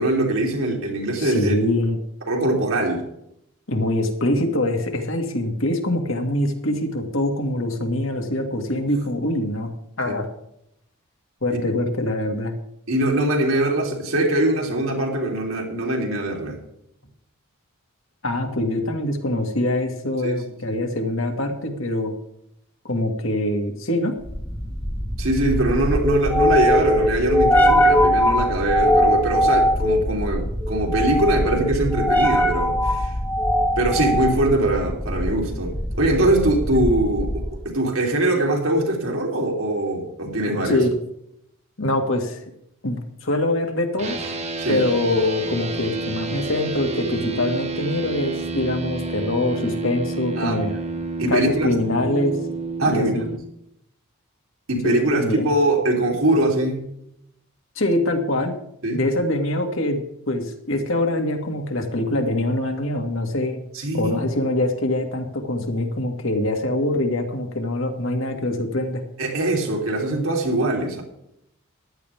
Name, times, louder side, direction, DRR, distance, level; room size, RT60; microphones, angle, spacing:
voice 1, 0.0-1.5 2.3-3.0 10.1-10.2 12.9-16.6 20.2-20.4 25.2-33.1 33.8-40.9 44.6-44.8 50.4-50.6 51.2-51.7 52.8-53.3 54.7-56.8 58.8-59.0 63.7-64.3 69.2-71.0, right 1 dB, 75° right, 0 dB, 3.1 m, -22 dB
voice 2, 1.2-2.0 3.7-9.7 10.0-10.3 11.4-12.5 18.2-22.1 22.8-24.2 36.7-36.8 40.6-40.9 41.8-42.4 42.8-44.2 44.7-50.7 51.3-52.4 52.8-53.3 54.8-55.5 57.8-58.6 58.9-60.0 60.3-63.6 63.9-69.0, left 1 dB, 65° left, 3 dB, 1.9 m, -24 dB
sound 1, 24.2-37.6, equal, 10° left, 1.0 m, -21 dB
sound 2, 44.0-53.4, right 3 dB, 30° right, 1.2 m, -29 dB
15.0 x 11.5 x 3.6 m, 0.77 s
head